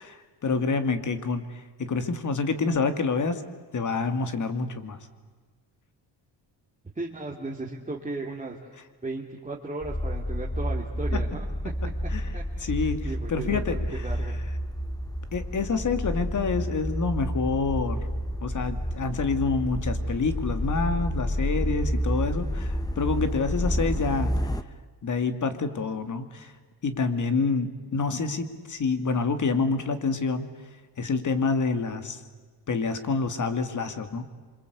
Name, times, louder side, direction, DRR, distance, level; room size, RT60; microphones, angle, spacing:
voice 1, 0.0-3.4 3.7-5.0 11.1-11.2 12.1-14.1 15.3-18.1 18.4-24.5 25.0-26.5 26.8-30.5 31.0-32.2 32.7-34.2, left 4 dB, 45° left, 9 dB, 2.7 m, -27 dB
voice 2, 6.9-8.8 9.0-11.4 12.3-14.4 23.9-24.2, right 2 dB, 15° right, -3 dB, 3.2 m, -36 dB
sound 1, 9.8-24.6, equal, 10° left, 1.1 m, -30 dB
28.0 x 25.5 x 8.4 m, 1.4 s
cardioid pair, 110°, 42 cm